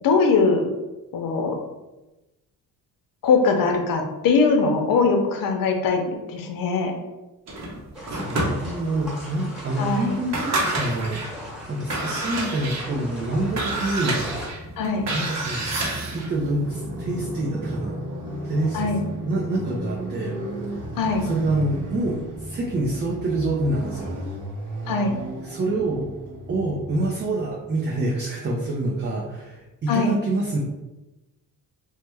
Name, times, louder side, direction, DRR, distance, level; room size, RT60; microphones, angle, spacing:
voice 1, 0.0-0.7 1.1-1.6 3.2-6.0 6.3-6.9 9.8-10.1 14.8-15.1 18.7-19.0 21.0-21.2 24.9-25.1 29.9-30.1, left 4 dB, 70° left, 4 dB, 0.6 m, -21 dB
sound 1, 7.5-9.0 9.6-9.7 10.1-11.3 11.8-16.4, right 2 dB, 50° right, 0.8 m, -28 dB
sound 2, 7.9-14.5, left 1 dB, ahead, 1.2 m, -39 dB
voice 2, 8.1-11.2 11.7-14.6 15.1-15.7 16.1-18.0 18.4-20.4 21.2-24.1 25.4-26.1 26.5-30.6, right 2 dB, 30° right, -3 dB, 0.5 m, -27 dB
Motorcycle, 10.3-28.1, right 1 dB, 75° right, 0.8 m, -36 dB
3.1 x 2.1 x 3.3 m, 1.0 s
cardioid pair, 115°, 35 cm